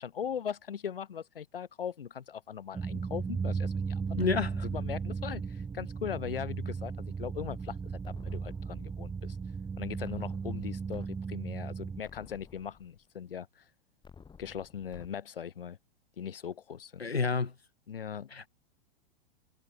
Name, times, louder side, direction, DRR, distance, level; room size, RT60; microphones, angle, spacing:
voice 1, 0.0-4.3 4.6-6.9 7.2-7.8 8.0-9.4 9.8-13.6 14.4-15.8 16.2-17.1 17.9-18.3, left 8 dB, 65° left, 4.8 m, -39 dB
sound 1, 2.7-12.0, right 5 dB, 10° right, 0.9 m, -36 dB
voice 2, 4.2-4.7 17.0-17.5 18.3-18.5, left 4 dB, 85° left, 1.0 m, -29 dB
sound 2, 8.0-9.1 10.0-11.1 11.5-11.6 12.0-13.1 14.0-15.1, left 6 dB, 15° left, 6.6 m, -54 dB
figure-of-eight pair, 95°, 30 cm